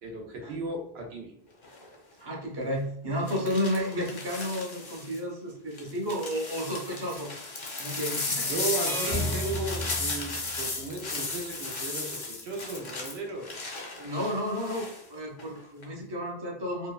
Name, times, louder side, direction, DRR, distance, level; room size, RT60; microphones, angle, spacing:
voice 1, 0.0-1.3 8.5-13.5, right 2 dB, 85° right, 1 dB, 0.9 m, -35 dB
sound 1, 1.6-2.0 3.3-5.2 5.7-15.0 15.4-15.8, left 3 dB, 40° left, 0.4 m, -35 dB
voice 2, 2.2-7.3 7.8-8.5 13.9-16.9, equal, 30° right, 0 dB, 0.5 m, -32 dB
sound 2, 8.9-10.9, equal, 55° right, 0.8 m, -34 dB
2.7 x 2.2 x 2.3 m, 0.73 s
omnidirectional pair, 1.1 m